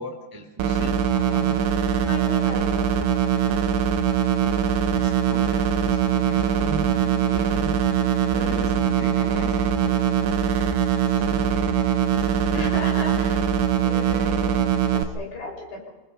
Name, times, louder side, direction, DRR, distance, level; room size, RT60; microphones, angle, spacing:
voice 1, 0.0-1.6 4.9-7.8 8.5-10.3, right 2 dB, 5° right, 5 dB, 1.7 m, -39 dB
sound 1, 0.6-15.0, right 8 dB, 80° right, 3.8 m, -22 dB
voice 2, 1.9-3.1 8.0-8.9 12.5-15.9, left 2 dB, 80° left, 0 dB, 8.4 m, -37 dB
26.0 x 25.5 x 5.6 m, 1.1 s
omnidirectional pair, 5.0 m